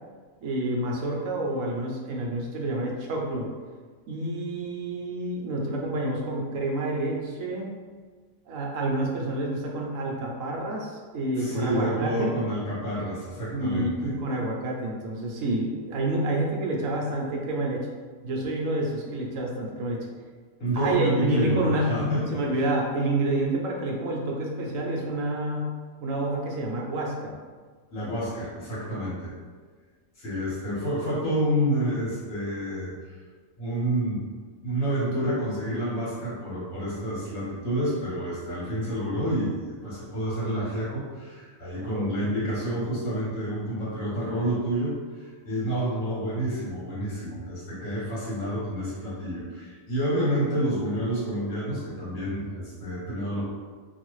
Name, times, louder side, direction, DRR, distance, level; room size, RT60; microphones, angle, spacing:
voice 1, 0.4-3.5 4.1-7.7 8.5-12.4 13.5-17.9 18.2-20.1 20.7-25.7 26.0-27.3 41.8-42.3, right 1 dB, 70° right, -1 dB, 1.0 m, -28 dB
voice 2, 11.4-14.1 20.6-22.4 27.9-29.3 30.2-33.2 33.6-34.2 34.6-53.4, right 1 dB, 65° left, -8 dB, 1.6 m, -29 dB
3.2 x 2.4 x 3.1 m, 1.5 s
omnidirectional pair, 1.4 m